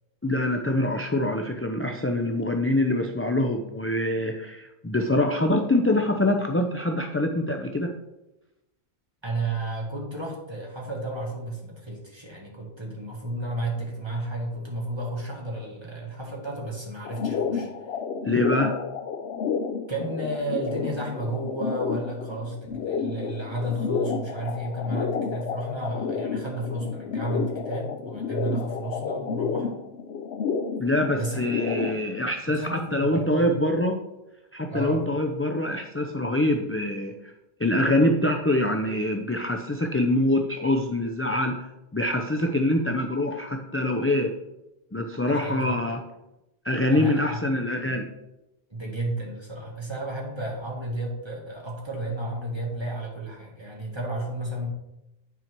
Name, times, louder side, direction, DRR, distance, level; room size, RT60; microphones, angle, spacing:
voice 1, 0.2-7.9 18.2-18.8 30.8-34.0 34.5-37.1 37.6-44.3 44.9-46.0 46.6-48.1, left 1 dB, 20° left, 3 dB, 0.4 m, -25 dB
voice 2, 9.2-17.7 19.9-29.7 31.1-31.4 32.6-33.6 34.7-35.0 45.3-45.9 46.9-47.4 48.7-54.7, right 1 dB, 25° right, -2 dB, 1.9 m, -32 dB
sound 1, 17.0-31.9, left 6 dB, 80° left, 0.9 m, -31 dB
9.3 x 4.4 x 4.5 m, 0.91 s
omnidirectional pair, 1.1 m